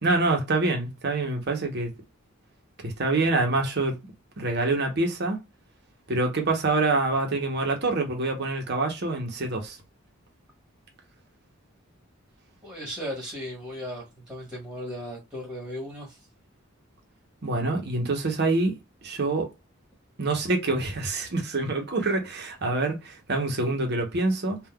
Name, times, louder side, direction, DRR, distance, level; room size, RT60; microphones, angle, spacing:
voice 1, 0.0-1.9 2.8-4.0 4.4-5.4 6.1-9.8 17.4-18.8 19.0-19.5 20.2-24.6, right 2 dB, 55° right, 1.0 m, -26 dB
voice 2, 12.6-16.2, equal, 5° right, 1.4 m, -36 dB
3.6 x 2.5 x 2.3 m
head